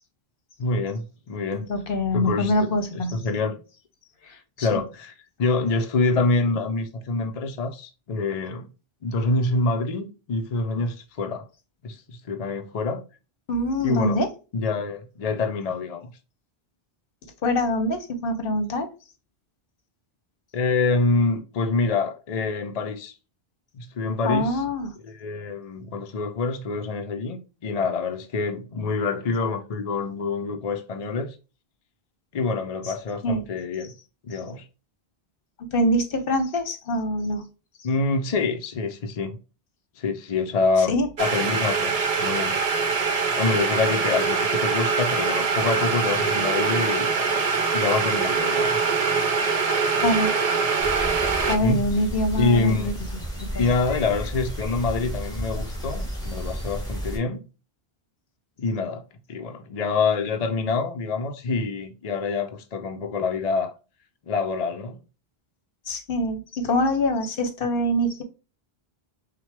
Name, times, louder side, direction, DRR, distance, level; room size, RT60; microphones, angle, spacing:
voice 1, 0.6-1.6 2.1-2.5 3.1-3.6 4.6-5.1 5.4-8.7 9.0-11.5 11.8-13.0 13.8-14.2 14.5-16.1 20.5-23.1 23.7-24.6 25.0-31.4 32.3-33.9 34.2-34.7 37.8-39.4 40.0-42.6 43.4-47.1 47.7-48.9 51.6-52.0 52.3-53.0 53.6-57.4 58.6-59.0 59.3-63.7 64.3-65.0, left 3 dB, 45° left, 0.6 m, -26 dB
voice 2, 1.6-3.2 4.3-4.7 13.5-14.3 17.4-18.9 24.2-24.9 33.2-33.4 35.7-37.5 40.9-41.1 50.0-50.3 51.5-52.9 53.4-53.5 65.9-68.2, left 1 dB, 65° left, 1.0 m, -24 dB
sound 1, 41.2-51.6, right 5 dB, 45° right, 0.6 m, -23 dB
sound 2, 50.8-57.2, equal, 5° left, 1.4 m, -32 dB
6.0 x 2.2 x 3.3 m
omnidirectional pair, 1.0 m